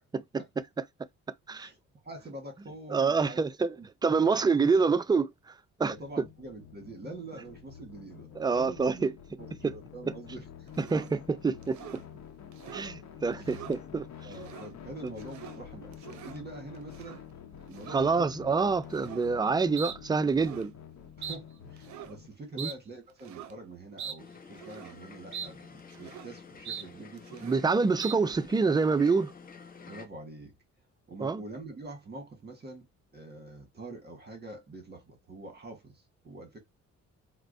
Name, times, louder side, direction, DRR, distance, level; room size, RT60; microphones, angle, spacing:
voice 1, 2.0-3.4 3.7-3.9 4.2-4.4 5.9-9.1 9.4-10.7 12.7-12.8 13.3-13.6 14.2-17.2 17.7-18.6 19.3-19.5 21.2-27.5 29.9-30.5 31.1-32.9 33.1-36.6, right 2 dB, 35° right, 1.3 m, -45 dB
voice 2, 2.9-3.7 4.0-5.3 5.8-5.9 8.4-9.1 10.9-11.8 12.7-14.0 17.9-20.7 22.6-22.7 27.4-29.3 31.2-31.4, right 4 dB, 15° right, 0.4 m, -26 dB
sound 1, 5.8-22.3, left 8 dB, 65° left, 0.8 m, -48 dB
sound 2, 10.7-11.2 11.6-12.0 12.5-12.9 13.3-13.8 14.3-14.7 15.1-15.6 15.9-16.4 16.9-17.2 17.7-18.1 18.9-19.3 19.8-20.0 20.3-20.7 21.2-21.4 21.8-22.2 22.6-22.8 23.2-23.5 24.0-24.2 24.5-25.0 25.3-25.5 25.8-26.3 26.6-26.9 27.2-27.7 28.0-28.1, right 9 dB, 70° right, 0.6 m, -42 dB
sound 3, 24.2-30.1, left 5 dB, 30° left, 0.7 m, -50 dB
4.3 x 2.1 x 2.6 m
cardioid pair, 90°, 30 cm